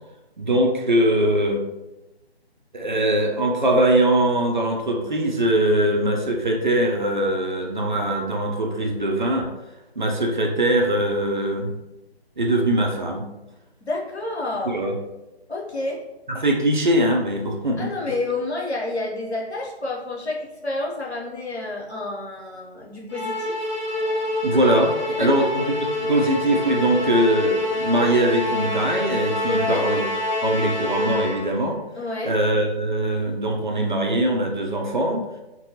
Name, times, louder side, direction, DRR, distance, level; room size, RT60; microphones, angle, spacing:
voice 1, 0.4-1.6 2.7-9.5 10.0-11.8 12.4-13.3 14.6-15.0 16.3-18.1 24.4-24.9 25.2-30.1 30.4-31.8 32.2-35.3, right 1 dB, 50° right, 1 dB, 0.5 m, -22 dB
voice 2, 13.8-14.8 15.5-16.0 17.8-23.7 25.2-25.5 29.5-29.8 32.0-32.3, left 2 dB, 90° left, -3 dB, 0.9 m, -29 dB
Musical instrument, 23.1-31.6, left 1 dB, 30° left, 1.1 m, -26 dB
2.6 x 2.2 x 2.7 m, 1.0 s
figure-of-eight pair, 155°, 32 cm